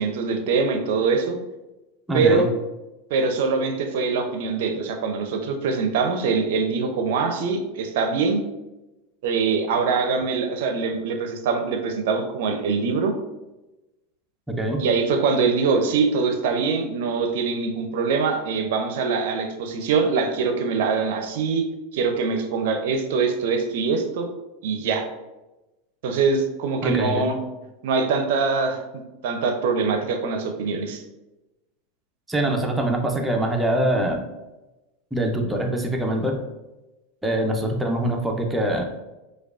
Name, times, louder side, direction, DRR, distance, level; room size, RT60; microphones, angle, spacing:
voice 1, 0.0-1.4 2.1-2.5 3.1-8.4 9.2-13.1 14.8-21.6 21.9-24.3 24.6-25.1 26.0-27.4 27.8-28.8 29.2-31.0, right 4 dB, 70° right, 6 dB, 0.5 m, -23 dB
voice 2, 2.1-2.5 14.5-14.8 26.8-27.3 32.3-34.2 35.1-36.4 37.2-38.9, right 1 dB, 10° right, 2 dB, 0.6 m, -24 dB
4.6 x 2.3 x 2.4 m, 1.0 s
hypercardioid pair, 95°, 0 cm